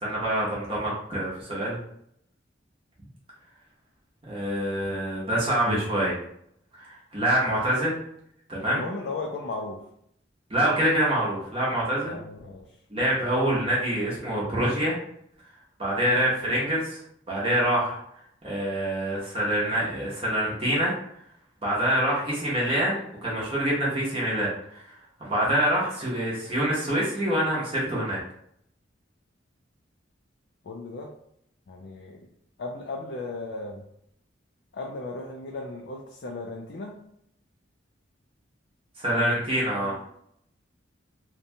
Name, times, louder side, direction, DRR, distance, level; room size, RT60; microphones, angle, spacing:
voice 1, 0.0-1.8 4.3-6.1 6.8-8.0 8.5-8.8 10.5-12.2 12.9-15.0 15.8-17.0 17.3-18.0 18.4-20.9 21.6-24.9 25.2-28.2 39.0-39.9, right 1 dB, 30° right, -6 dB, 0.7 m, -26 dB
voice 2, 8.6-9.8 12.0-12.6 30.6-31.1 31.7-32.2 32.6-33.8 34.7-36.9 39.0-40.0, left 3 dB, 60° left, 0 dB, 0.3 m, -36 dB
2.7 x 2.1 x 2.7 m, 0.72 s
head